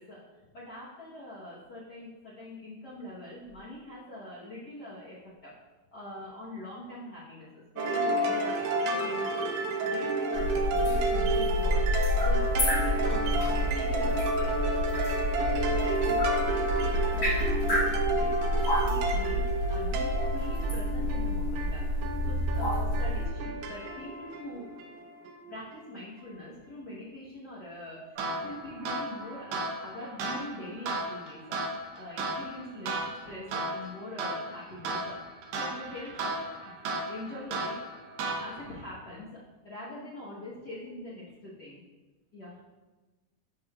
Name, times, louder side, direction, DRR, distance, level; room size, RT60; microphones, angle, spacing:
voice 1, 0.0-5.5 5.9-9.4 9.8-14.7 15.2-21.8 22.2-24.7 25.5-35.2 35.5-37.8 38.4-39.3 39.6-41.8 42.3-42.6, left 1 dB, 65° left, -8 dB, 1.0 m, -43 dB
sound 1, 7.8-25.6, right 2 dB, 85° right, 2.3 m, -31 dB
sound 2, 10.3-23.3, equal, 35° left, 2.0 m, -29 dB
sound 3, 28.2-38.8, right 2 dB, 70° right, 2.0 m, -35 dB
12.0 x 4.8 x 2.4 m, 1.2 s
omnidirectional pair, 3.7 m